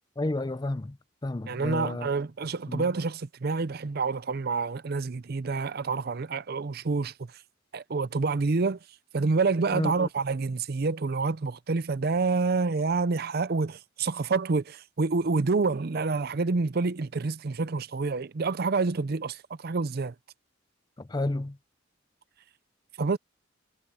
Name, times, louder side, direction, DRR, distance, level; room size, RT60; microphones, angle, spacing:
voice 1, 0.2-1.0 1.2-2.1 2.7-2.9 9.7-10.1 21.0-21.6, left 2 dB, 20° left, 0.5 m, -31 dB
voice 2, 1.5-7.1 7.7-8.8 9.1-20.1 23.0-23.2, right 4 dB, 50° right, 0.6 m, -28 dB
head